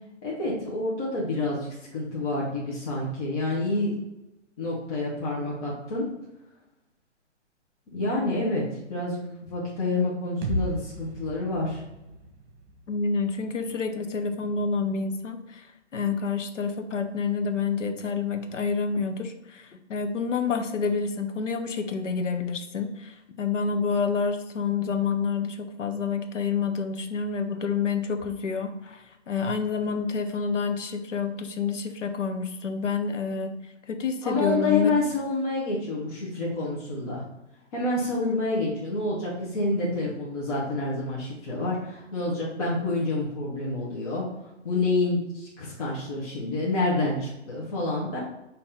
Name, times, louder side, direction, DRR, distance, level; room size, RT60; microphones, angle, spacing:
voice 1, 0.2-3.9 4.6-6.0 7.9-8.6 8.9-11.8 34.2-37.2 37.7-44.3 44.6-48.2, left 2 dB, 30° left, -6 dB, 1.0 m, -28 dB
sound 1, 10.4-14.3, right 1 dB, 40° right, 1.0 m, -36 dB
voice 2, 12.9-15.7 15.9-33.5 33.9-34.9 38.1-38.4, left 5 dB, 80° left, 7 dB, 0.7 m, -28 dB
4.1 x 2.8 x 3.6 m, 0.94 s
figure-of-eight pair, 130°, 36 cm